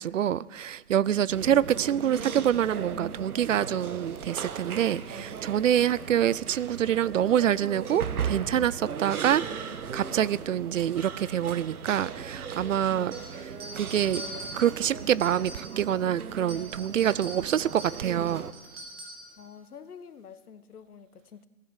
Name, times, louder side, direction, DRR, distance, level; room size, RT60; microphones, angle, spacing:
voice 1, 0.0-14.2 14.5-18.5, right 10 dB, 60° right, 22 dB, 0.5 m, -26 dB
sound 1, 1.3-18.5, right 6 dB, 80° right, 1.3 m, -37 dB
sound 2, 13.1-16.0 16.4-19.4, right 1 dB, 45° right, 3.5 m, -43 dB
voice 2, 19.4-21.5, left 7 dB, 85° left, 12 dB, 1.3 m, -47 dB
16.0 x 10.0 x 8.1 m, 1.1 s
hypercardioid pair, 160°, 44 cm